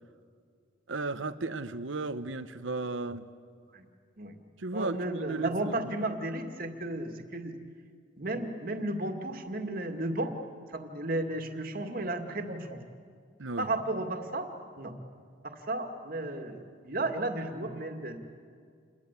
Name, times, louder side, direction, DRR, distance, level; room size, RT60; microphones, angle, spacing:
voice 1, 0.9-3.3 4.6-5.8 13.4-13.7, right 3 dB, 75° right, 12 dB, 1.0 m, -35 dB
voice 2, 4.7-7.5 8.2-10.3 10.7-12.8 13.6-14.9 15.4-18.2, right 2 dB, 45° right, 5 dB, 2.1 m, -34 dB
28.0 x 22.0 x 8.3 m, 2.1 s
head